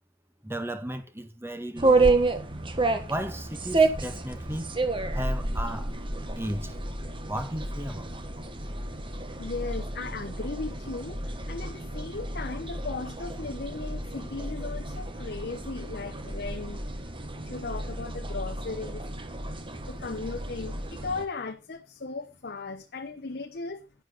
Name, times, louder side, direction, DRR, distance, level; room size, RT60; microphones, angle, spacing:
voice 1, 0.4-2.2 3.1-4.7 5.1-5.9 6.3-6.7 7.2-8.1, right 1 dB, 15° right, 1.7 m, -35 dB
sound 1, 1.8-21.3, right 3 dB, 30° right, 1.6 m, -30 dB
voice 2, 9.4-16.8 17.4-19.0 19.8-23.8, left 3 dB, 60° left, 1.0 m, -37 dB
11.0 x 10.5 x 4.0 m
head